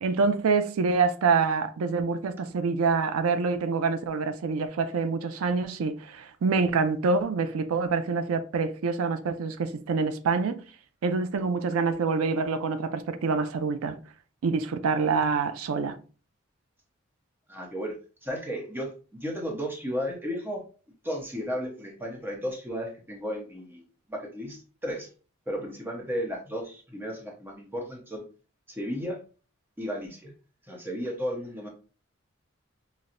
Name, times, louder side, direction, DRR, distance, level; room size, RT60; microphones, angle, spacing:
voice 1, 0.0-10.6 11.0-14.0 14.4-16.0, right 4 dB, 90° right, 0.4 m, -26 dB
voice 2, 17.5-17.9 18.2-20.6 21.0-23.8 24.1-25.1 25.5-28.2 28.7-29.2 29.8-30.3 30.7-31.7, equal, 10° right, 0.8 m, -34 dB
5.7 x 2.0 x 2.5 m
head